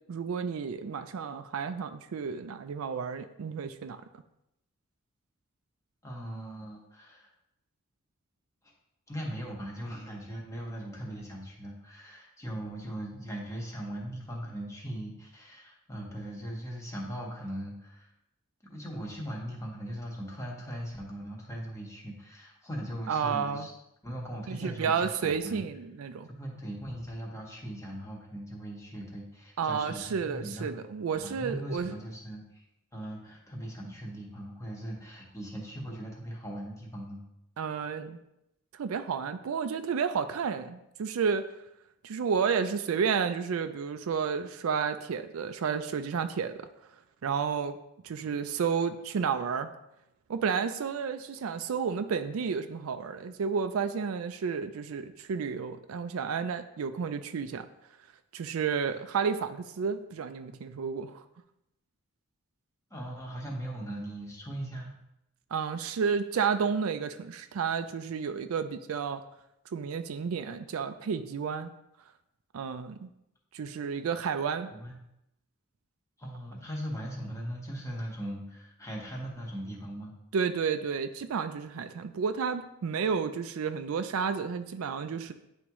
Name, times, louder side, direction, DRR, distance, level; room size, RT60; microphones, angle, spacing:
voice 1, 0.1-4.0 23.1-23.7 24.5-26.3 29.6-32.0 37.6-38.2 38.7-41.5 42.0-46.7 47.2-47.8 48.0-49.7 50.3-57.7 58.3-61.2 65.5-69.2 69.7-71.7 72.5-73.1 73.5-74.7 80.3-85.3, right 6 dB, 80° right, 9 dB, 0.4 m, -31 dB
voice 2, 6.0-7.3 9.1-18.1 18.7-23.7 24.0-25.6 26.3-30.7 31.2-32.6 32.9-37.2 62.9-64.9 74.7-75.0 76.2-80.1, equal, 15° left, -1 dB, 1.1 m, -39 dB
9.5 x 3.5 x 3.0 m, 0.84 s
head